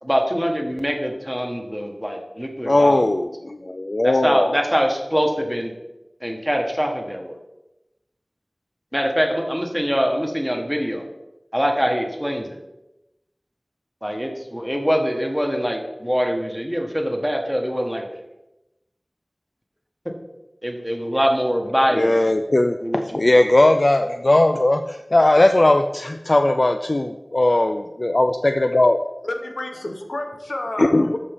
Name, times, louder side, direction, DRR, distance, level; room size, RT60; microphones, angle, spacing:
voice 1, 0.0-3.0 4.0-5.7 6.2-7.4 8.9-11.0 11.5-12.6 14.0-18.0 20.6-22.1 22.8-23.4, equal, ahead, 2 dB, 1.5 m, -23 dB
voice 2, 2.6-4.5 21.9-29.0 30.8-31.1, left 1 dB, 55° left, 6 dB, 0.4 m, -18 dB
voice 3, 29.2-31.2, left 1 dB, 90° left, 4 dB, 1.0 m, -30 dB
13.5 x 5.2 x 3.6 m, 0.94 s
wide cardioid pair, 45°, 0 cm